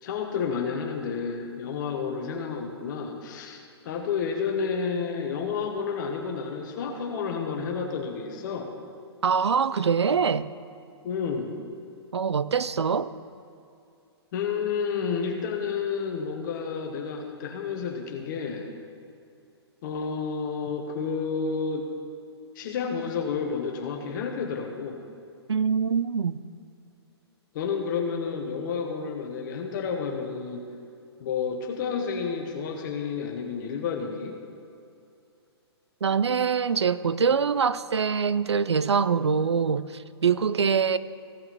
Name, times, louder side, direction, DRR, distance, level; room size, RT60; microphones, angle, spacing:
voice 1, 0.0-8.7 11.0-11.5 14.3-18.7 19.8-21.9 22.5-25.0 27.5-30.6 31.2-34.3, left 5 dB, 45° left, 1.2 m, -30 dB
voice 2, 9.2-10.5 12.1-13.1 25.5-26.3 36.0-41.0, right 6 dB, 80° right, 0.5 m, -24 dB
15.5 x 5.6 x 6.1 m
figure-of-eight pair, 120°, 14 cm